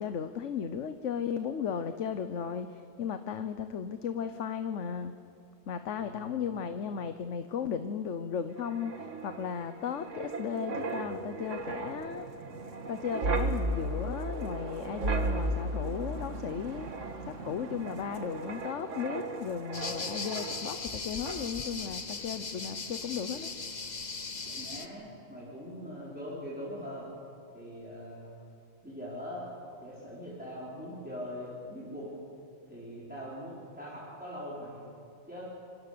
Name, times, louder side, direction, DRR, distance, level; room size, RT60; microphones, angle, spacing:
voice 1, 0.0-5.1 5.7-12.3 12.9-16.9 17.2-23.5, left 7 dB, 75° left, 9 dB, 1.2 m, -35 dB
voice 2, 5.9-6.5 24.5-27.1 27.5-28.3 28.8-32.2 32.7-34.8 35.3-35.4, equal, 5° right, -8 dB, 4.8 m, -42 dB
Wind, 8.6-21.0 21.3-21.5, right 2 dB, 75° right, 1.9 m, -35 dB
sound 1, 19.7-24.9, left 4 dB, 35° left, 1.3 m, -38 dB
26.0 x 25.5 x 6.9 m, 2.6 s
omnidirectional pair, 1.3 m